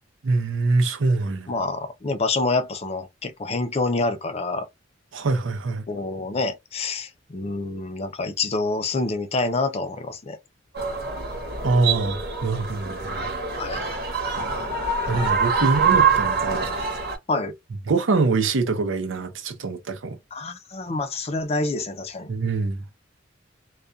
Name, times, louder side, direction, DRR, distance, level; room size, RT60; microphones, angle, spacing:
voice 1, 0.2-1.5 5.1-5.8 11.6-13.2 15.1-16.7 17.9-20.2 22.3-22.8, right 3 dB, 75° right, 0.6 m, -24 dB
voice 2, 1.5-4.7 5.9-10.4 13.6-13.9 17.3-17.5 20.3-22.3, left 3 dB, 30° left, 0.4 m, -27 dB
sound 1, 10.7-17.2, right 5 dB, 55° right, 1.0 m, -25 dB
2.3 x 2.2 x 2.5 m
head